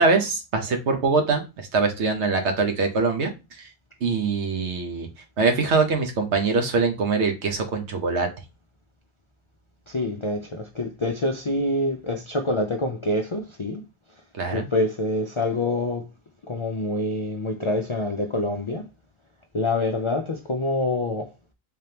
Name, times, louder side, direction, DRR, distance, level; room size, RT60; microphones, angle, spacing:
voice 1, 0.0-3.7 4.0-5.1 5.4-8.3 14.4-14.7, right 4 dB, 80° right, 1.2 m, -23 dB
voice 2, 9.9-13.8 14.1-14.2 14.5-16.1 16.5-18.9 19.5-21.3, left 2 dB, 50° left, 0.3 m, -26 dB
3.7 x 3.3 x 2.8 m
omnidirectional pair, 1.1 m